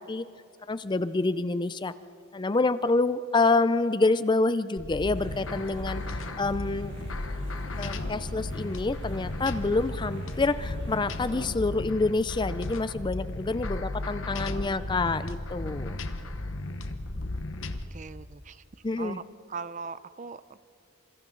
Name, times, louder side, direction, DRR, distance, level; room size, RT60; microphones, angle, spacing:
voice 1, 0.7-1.9 2.3-6.9 7.8-16.0 18.8-19.2, left 3 dB, 20° left, 14 dB, 0.4 m, -27 dB
sound 1, 4.8-17.8, left 2 dB, 60° left, 1.1 m, -35 dB
sound 2, 5.1-11.5, right 1 dB, 55° right, 3.0 m, -44 dB
voice 2, 17.9-18.6 19.0-20.6, right 5 dB, 35° right, 15 dB, 0.5 m, -40 dB
28.5 x 26.0 x 3.9 m, 2.6 s
head